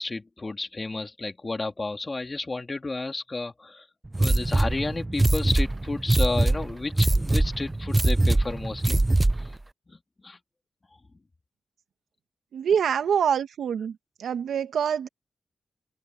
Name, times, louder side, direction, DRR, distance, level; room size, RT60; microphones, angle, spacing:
voice 1, 0.0-3.8 4.2-9.0 9.9-10.0 10.2-10.4, left 3 dB, 30° left, 3.2 m, -32 dB
sound 1, 4.1-9.6, right 2 dB, 20° right, 0.6 m, -23 dB
voice 2, 12.5-13.9 14.2-15.1, right 8 dB, 85° right, 1.7 m, -25 dB
open air
cardioid pair, 75°, 0 cm